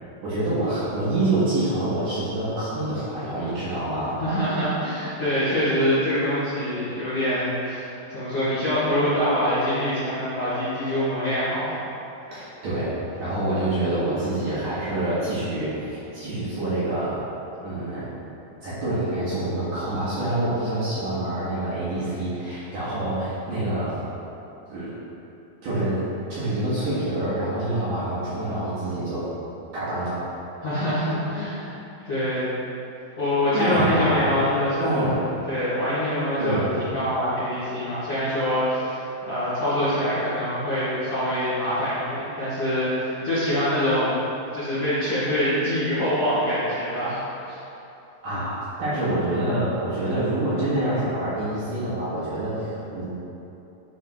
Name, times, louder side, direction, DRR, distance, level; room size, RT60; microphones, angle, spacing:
voice 1, 0.2-4.2 12.3-17.2 17.6-18.1 18.6-24.0 24.7-25.0 25.6-26.0 26.3-29.3 29.7-30.2 33.5-34.3 34.8-35.2 36.4-36.7 48.2-53.0, right 1 dB, 60° right, -12 dB, 2.6 m, -26 dB
voice 2, 4.2-11.8 30.6-31.8 32.0-32.5 33.0-35.2 35.5-44.2 44.5-47.6, equal, 55° left, -14 dB, 1.7 m, -25 dB
10.5 x 3.6 x 3.6 m, 2.9 s
omnidirectional pair, 5.2 m